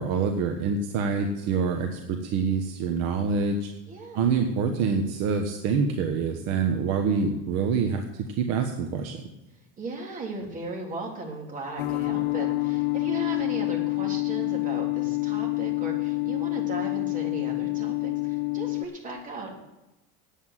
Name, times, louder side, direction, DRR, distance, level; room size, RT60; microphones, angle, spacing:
voice 1, 0.0-3.7 4.1-9.2, right 5 dB, 60° right, 4 dB, 1.4 m, -26 dB
voice 2, 2.9-3.4 3.9-4.4 9.8-19.5, right 3 dB, 25° right, 0 dB, 3.4 m, -37 dB
sound 1, 11.8-18.9, left 24 dB, 85° left, 0.8 m, -27 dB
9.5 x 8.5 x 7.4 m, 0.97 s
supercardioid pair, 125°, 29 cm